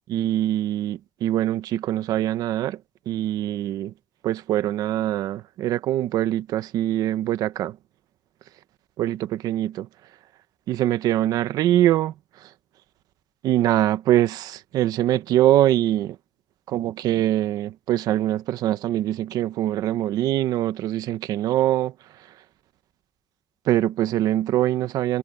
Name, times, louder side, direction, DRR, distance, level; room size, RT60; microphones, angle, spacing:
voice 1, 0.1-2.8 3.1-3.9 4.2-7.8 9.0-9.9 10.7-12.5 13.4-16.2 16.7-22.3 23.6-25.2, right 13 dB, 85° right, 1.1 m, -23 dB
cardioid pair, 70°, 6 cm